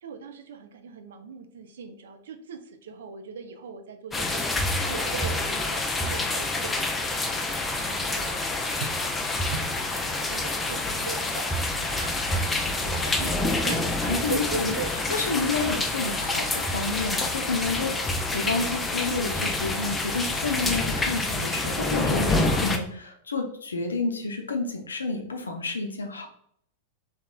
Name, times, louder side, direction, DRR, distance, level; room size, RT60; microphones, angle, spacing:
voice 1, 0.0-4.5 4.8-7.5 7.8-8.4 8.8-8.9 9.5-11.5 11.7-13.9 14.3-14.9, right 5 dB, 70° right, 7 dB, 0.3 m, -39 dB
sound 1, 4.1-22.8, left 2 dB, 15° left, 0.4 m, -27 dB
voice 2, 14.0-14.8 15.1-26.3, left 3 dB, 80° left, 4 dB, 0.4 m, -30 dB
2.8 x 2.3 x 2.2 m, 0.68 s
figure-of-eight pair, 95°, 0 cm